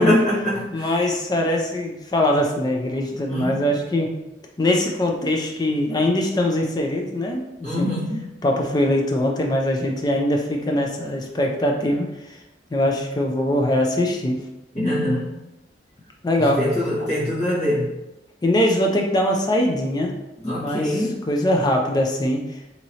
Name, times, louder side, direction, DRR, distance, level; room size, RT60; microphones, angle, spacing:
voice 1, 0.0-0.9 3.3-3.6 7.6-8.2 14.7-15.3 16.6-17.9 20.4-21.2, left 1 dB, 40° left, -9 dB, 1.3 m, -23 dB
voice 2, 0.7-4.1 4.6-7.9 8.4-12.1 12.7-14.4 16.2-16.6 18.4-20.1 20.6-22.4, left 1 dB, 25° left, 1 dB, 0.4 m, -22 dB
2.9 x 2.7 x 2.8 m, 0.96 s
head